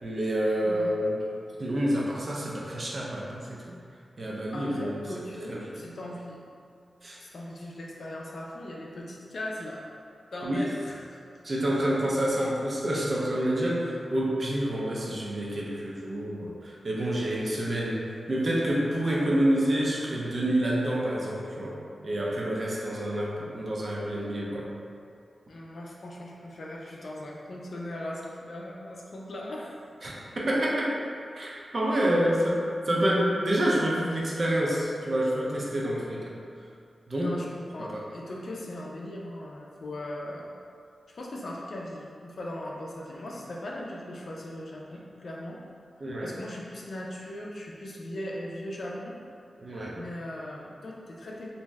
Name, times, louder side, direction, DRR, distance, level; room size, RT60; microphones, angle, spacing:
voice 1, 0.0-1.2 1.6-3.6 4.2-5.0 5.5-5.7 7.0-7.2 10.4-10.6 11.4-21.8 22.0-24.7 30.0-30.9 31.3-36.3 37.1-37.3 37.8-38.0 46.0-46.3 49.6-49.9, right 1 dB, 50° right, -4 dB, 0.5 m, -28 dB
voice 2, 4.5-6.4 7.2-9.9 10.3-11.2 25.5-29.8 31.9-32.1 37.2-40.5 41.1-45.6 46.2-49.2 50.0-51.5, left 1 dB, 65° left, -3 dB, 0.4 m, -39 dB
2.6 x 2.1 x 3.3 m, 2.3 s
wide cardioid pair, 80°, 0 cm